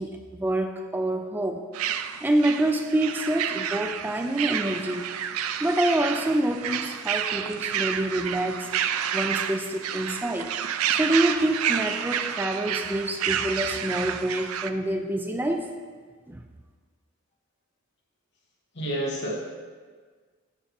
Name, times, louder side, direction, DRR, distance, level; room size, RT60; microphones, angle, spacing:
voice 1, 0.0-1.7 2.2-5.1 5.6-8.7 9.1-10.5 10.9-15.7 16.3-16.4, right 1 dB, 10° right, 5 dB, 0.3 m, -26 dB
sound 1, 1.7-14.7, right 9 dB, 85° right, 0.4 m, -30 dB
voice 2, 18.7-19.4, right 1 dB, 55° left, -4 dB, 1.6 m, -29 dB
12.0 x 5.7 x 2.9 m, 1.5 s
head